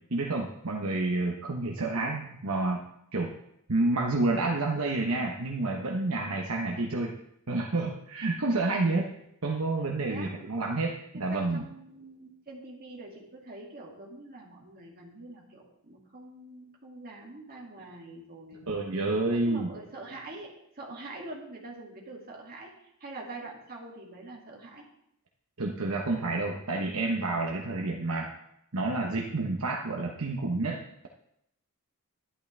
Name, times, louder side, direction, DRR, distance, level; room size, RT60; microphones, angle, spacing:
voice 1, 0.1-2.8 3.1-3.3 3.7-7.2 7.5-9.1 9.4-11.7 18.7-19.7 25.6-28.3 28.7-31.1, right 2 dB, 70° right, 0 dB, 1.1 m, -29 dB
voice 2, 10.0-10.3 11.1-18.7 19.3-24.8, right 2 dB, 45° right, -2 dB, 2.5 m, -45 dB
11.5 x 11.0 x 3.4 m, 0.75 s
head